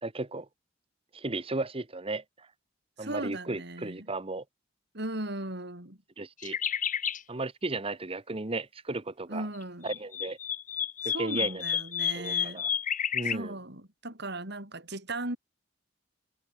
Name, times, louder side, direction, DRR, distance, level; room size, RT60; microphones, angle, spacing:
voice 1, 0.0-0.5 1.1-2.5 3.0-4.4 6.2-6.6 7.3-9.5 9.8-10.4 11.0-11.6 12.1-12.7 13.1-13.6, right 2 dB, 30° right, 1.2 m, -35 dB
voice 2, 3.0-4.0 4.9-6.0 9.3-10.0 11.0-12.6 13.2-15.4, right 2 dB, 60° right, 6.6 m, -37 dB
sound 1, 6.4-7.2 9.6-13.4, left 8 dB, 45° left, 1.7 m, -31 dB
head